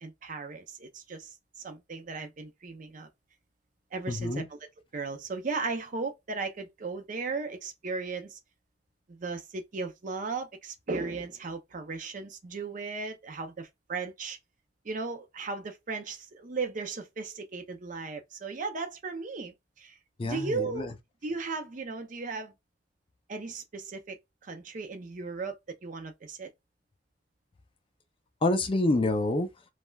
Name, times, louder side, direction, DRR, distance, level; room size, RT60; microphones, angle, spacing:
voice 1, 0.0-3.1 3.9-4.6 4.9-8.4 9.1-14.4 14.8-19.9 20.2-20.9 21.2-22.5 23.3-26.5, right 4 dB, 45° right, 0.5 m, -36 dB
voice 2, 4.1-4.5 20.2-20.9 28.4-29.5, left 2 dB, 30° left, 0.4 m, -27 dB
3.2 x 2.0 x 2.2 m
head